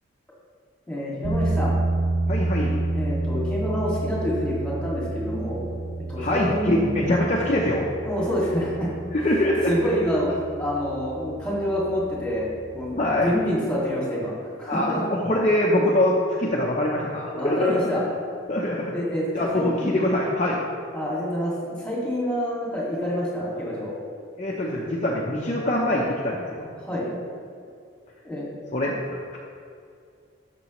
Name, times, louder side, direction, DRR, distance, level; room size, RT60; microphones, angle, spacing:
voice 1, 0.9-1.8 2.9-5.6 6.1-7.1 8.0-10.3 10.6-15.0 17.3-18.0 18.9-20.0 20.9-21.5 21.8-24.0 26.8-27.1 28.2-28.5, equal, 5° left, -6 dB, 2.2 m, -27 dB
sound 1, 1.2-13.6, right 2 dB, 40° right, 0.8 m, -30 dB
voice 2, 2.3-2.9 6.2-7.9 9.1-9.7 13.0-13.3 14.7-17.8 18.5-18.9 19.3-20.6 24.4-26.7 28.7-29.4, left 1 dB, 35° left, -3 dB, 0.7 m, -24 dB
13.0 x 6.1 x 3.1 m, 2.4 s
head